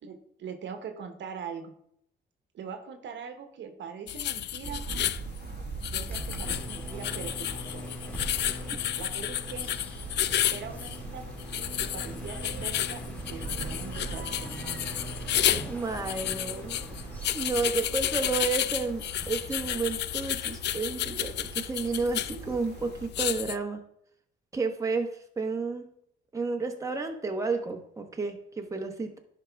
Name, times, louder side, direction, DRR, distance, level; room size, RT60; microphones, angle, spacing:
voice 1, 0.0-1.7 2.5-4.9 5.8-7.9 9.0-9.7 10.5-14.8, right 6 dB, 65° right, 6 dB, 1.1 m, -42 dB
sound 1, 4.1-23.6, left 12 dB, 60° left, 0.4 m, -32 dB
sound 2, 4.6-23.1, right 5 dB, 50° right, 1.0 m, -43 dB
sound 3, 6.1-23.3, equal, 5° left, 2.1 m, -42 dB
voice 2, 15.7-16.8 17.3-23.8 24.5-25.1 25.4-25.8 26.3-29.2, right 4 dB, 15° right, 3 dB, 1.2 m, -31 dB
11.0 x 5.1 x 3.5 m, 0.70 s
cardioid pair, 90°, 20 cm